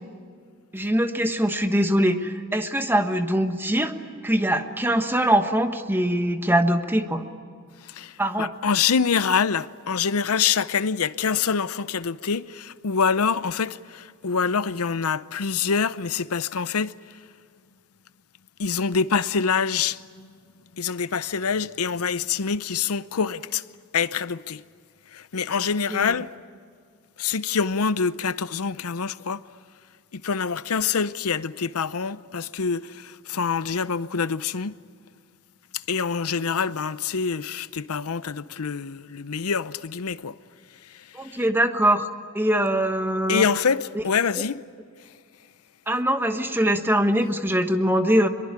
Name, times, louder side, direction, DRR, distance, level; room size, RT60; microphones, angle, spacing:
voice 1, 0.7-3.9 4.2-7.2 8.2-8.5 25.9-26.1 41.1-42.1 42.3-43.4 43.9-44.0 45.9-48.3, right 1 dB, 10° right, 1.3 m, -22 dB
voice 2, 7.9-17.0 18.6-20.3 20.8-23.6 23.9-24.6 25.1-26.3 27.2-29.4 30.1-34.7 35.9-40.3 43.3-44.6, left 6 dB, 90° left, 0.7 m, -25 dB
24.0 x 22.5 x 9.8 m
head